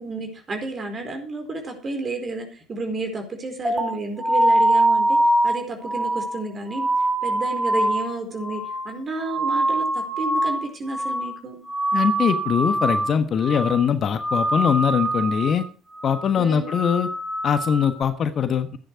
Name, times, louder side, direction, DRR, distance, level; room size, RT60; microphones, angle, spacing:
voice 1, 0.0-5.2 5.4-6.9 7.2-11.6 16.4-16.7, right 3 dB, 35° right, 5 dB, 4.5 m, -31 dB
sound 1, 3.6-10.6 10.9-11.4 11.7-13.1 13.4-13.9 14.2-15.6 16.0-16.3 16.7-18.0, right 1 dB, 10° right, 2.8 m, -23 dB
voice 2, 11.9-15.7 16.0-17.1 17.4-18.8, left 7 dB, 45° left, 10 dB, 1.3 m, -22 dB
13.0 x 10.5 x 4.7 m, 0.39 s
hypercardioid pair, 55°, 0 cm